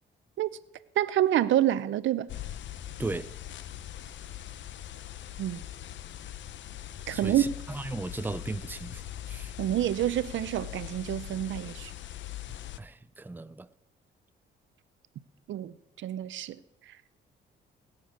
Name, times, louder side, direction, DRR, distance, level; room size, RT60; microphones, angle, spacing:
voice 1, 1.0-2.3 5.4-5.6 7.1-7.4 9.6-11.9 15.5-15.7 16.0-16.6, right 12 dB, 70° right, 0.7 m, -27 dB
sound 1, 2.3-12.8, left 12 dB, 70° left, 0.8 m, -41 dB
voice 2, 3.0-3.3 7.1-9.5 12.5-13.7, right 2 dB, 10° right, 0.6 m, -37 dB
20.5 x 6.9 x 8.2 m
cardioid pair, 90°, 20 cm